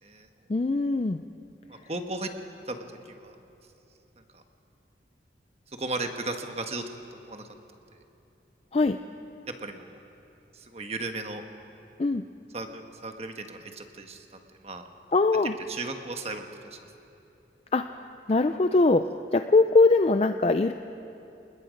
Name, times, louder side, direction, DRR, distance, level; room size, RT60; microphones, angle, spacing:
voice 1, 0.5-1.2 8.7-9.0 12.0-12.2 15.1-15.5 17.7-18.0 18.3-19.0 19.3-20.7, left 3 dB, 35° left, 8 dB, 0.4 m, -21 dB
voice 2, 1.7-2.3 2.7-3.3 4.3-4.4 5.7-6.8 7.1-7.5 7.9-8.0 9.6-9.9 10.5-11.4 12.5-14.8 15.7-16.8, right 2 dB, 35° right, 5 dB, 1.3 m, -36 dB
28.0 x 20.5 x 5.2 m, 2.9 s
head